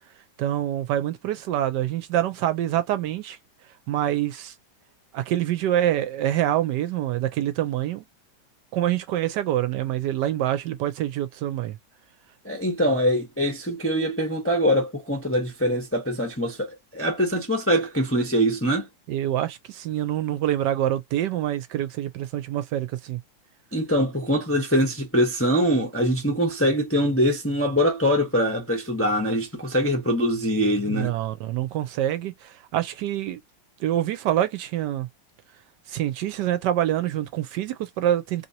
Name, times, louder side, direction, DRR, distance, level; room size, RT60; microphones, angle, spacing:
voice 1, 0.4-3.4 3.9-4.5 5.1-8.0 8.7-11.8 19.1-23.2 30.9-33.4 33.8-35.1 35.9-38.5, right 12 dB, 75° right, 1.1 m, -26 dB
voice 2, 12.4-18.9 23.7-31.1, equal, 15° left, 0.5 m, -23 dB
3.0 x 2.8 x 2.6 m
omnidirectional pair, 2.0 m